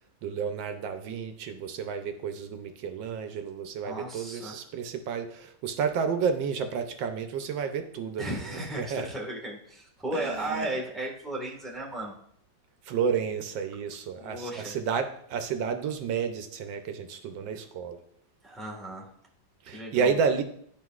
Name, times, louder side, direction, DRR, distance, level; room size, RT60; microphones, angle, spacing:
voice 1, 0.2-9.1 10.1-10.8 12.8-18.0 19.6-20.4, right 6 dB, 80° right, 7 dB, 1.4 m, -31 dB
voice 2, 3.8-4.6 8.2-12.1 14.2-14.7 18.4-19.1 19.7-20.2, right 1 dB, ahead, -3 dB, 1.3 m, -35 dB
11.0 x 4.7 x 2.4 m, 0.65 s
omnidirectional pair, 2.0 m